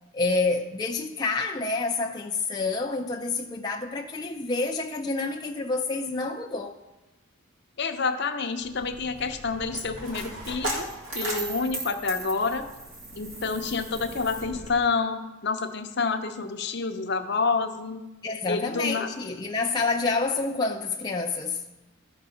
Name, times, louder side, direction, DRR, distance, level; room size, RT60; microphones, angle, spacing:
voice 1, 0.1-6.7 18.2-21.7, left 3 dB, 20° left, 0.4 m, -28 dB
voice 2, 7.8-10.9 11.1-12.6 13.1-18.0 18.5-19.1, left 4 dB, 55° left, 0.7 m, -28 dB
Coin (dropping), 8.6-14.7, right 1 dB, 75° right, 2.2 m, -36 dB
12.5 x 4.7 x 5.6 m
head